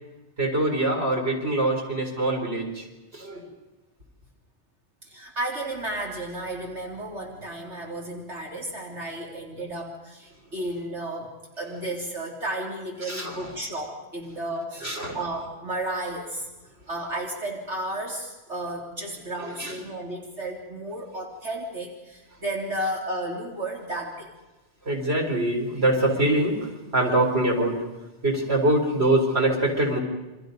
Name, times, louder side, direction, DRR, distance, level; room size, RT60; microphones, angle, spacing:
voice 1, 0.4-2.9 3.1-3.4 13.0-13.5 14.8-15.2 19.6-19.8 24.9-27.8 28.2-30.0, right 1 dB, 65° right, 2 dB, 4.4 m, -24 dB
voice 2, 5.0-16.5 16.9-24.3, right 1 dB, 85° right, -2 dB, 3.9 m, -33 dB
29.0 x 25.5 x 5.4 m, 1.1 s
omnidirectional pair, 1.2 m